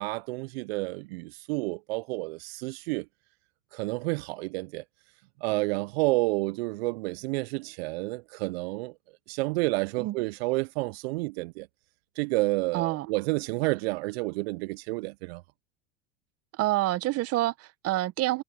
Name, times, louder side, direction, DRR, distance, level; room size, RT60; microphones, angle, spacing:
voice 1, 0.0-3.1 3.7-4.8 5.4-8.9 9.3-11.7 12.2-15.4, right 24 dB, 65° right, 0.6 m, -30 dB
voice 2, 12.7-13.1 16.5-18.4, right 16 dB, 45° right, 1.1 m, -27 dB
hypercardioid pair, 90°, 33 cm